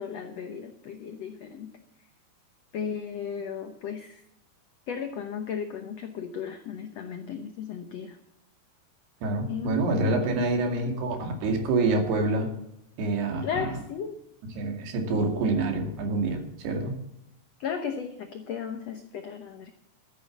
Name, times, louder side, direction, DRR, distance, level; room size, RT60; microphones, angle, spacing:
voice 1, 0.0-1.7 2.7-4.2 4.9-8.2 9.5-10.9 13.4-14.2 17.6-19.7, left 7 dB, 90° left, 7 dB, 1.4 m, -35 dB
voice 2, 9.2-12.5 13.0-13.7 14.6-16.9, right 3 dB, 90° right, 4 dB, 4.4 m, -27 dB
13.5 x 9.3 x 7.3 m, 0.80 s
omnidirectional pair, 4.5 m